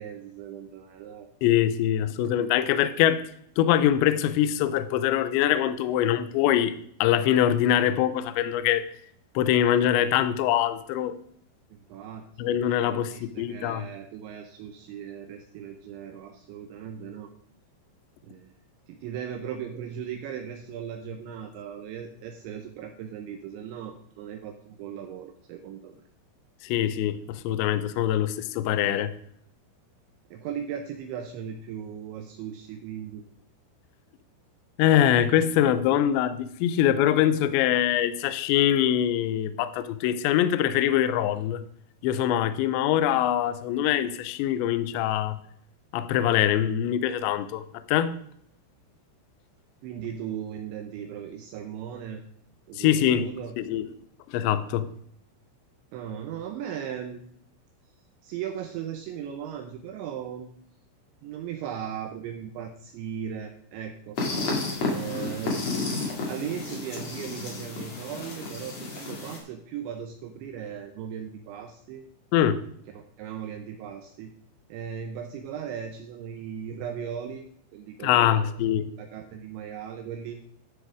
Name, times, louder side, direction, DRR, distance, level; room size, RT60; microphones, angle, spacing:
voice 1, 0.0-1.3 11.7-12.3 12.8-17.3 18.2-18.5 18.9-26.0 30.3-33.2 49.8-52.2 52.7-53.6 55.9-57.2 58.2-60.5 61.2-64.2 64.8-65.6 66.3-72.1 72.9-74.3 74.7-77.5 77.7-78.6 79.0-80.4, right 8 dB, 80° right, 5 dB, 2.7 m, -37 dB
voice 2, 1.4-3.2 3.6-6.7 7.0-8.9 9.4-11.2 12.4-13.9 26.6-29.1 34.8-41.6 42.0-45.4 45.9-47.6 47.9-48.1 52.8-53.2 53.6-53.8 54.3-54.9 72.3-72.6 78.0-78.9, left 11 dB, 90° left, 13 dB, 2.6 m, -23 dB
sound 1, 64.2-69.4, left 3 dB, 40° left, 2.6 m, -31 dB
12.5 x 6.4 x 4.9 m, 0.65 s
omnidirectional pair, 5.9 m